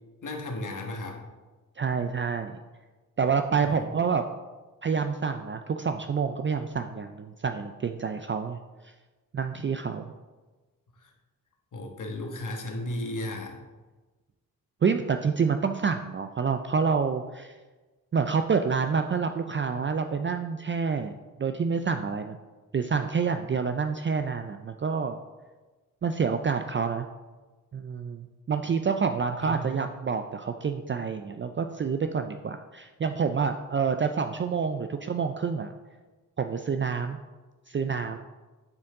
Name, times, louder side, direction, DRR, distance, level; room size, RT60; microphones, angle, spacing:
voice 1, 0.2-1.2 3.5-3.8 10.9-11.1 11.7-13.6 29.4-29.7, left 1 dB, 60° left, 2 dB, 1.4 m, -35 dB
voice 2, 1.8-2.5 3.2-4.2 4.8-8.9 9.3-10.1 14.8-17.5 18.1-21.1 21.4-22.4 22.7-25.2 26.0-27.1 27.7-35.7 36.4-37.2 37.7-38.2, right 5 dB, 35° right, 7 dB, 0.4 m, -28 dB
9.6 x 4.4 x 3.7 m, 1.3 s
cardioid pair, 55°, 35 cm